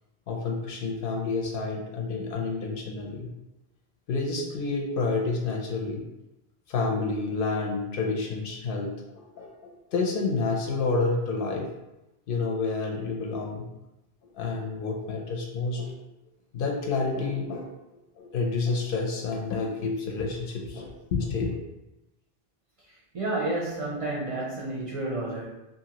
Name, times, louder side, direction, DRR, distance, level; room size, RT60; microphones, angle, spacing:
voice 1, 0.3-3.3 4.1-6.0 6.7-11.7 12.3-13.7 14.2-15.9 16.5-17.7 18.2-21.6, left 3 dB, 65° left, 0 dB, 0.7 m, -29 dB
voice 2, 23.1-25.5, right 2 dB, 45° right, -6 dB, 0.5 m, -30 dB
2.7 x 2.6 x 2.8 m, 0.95 s
omnidirectional pair, 1.1 m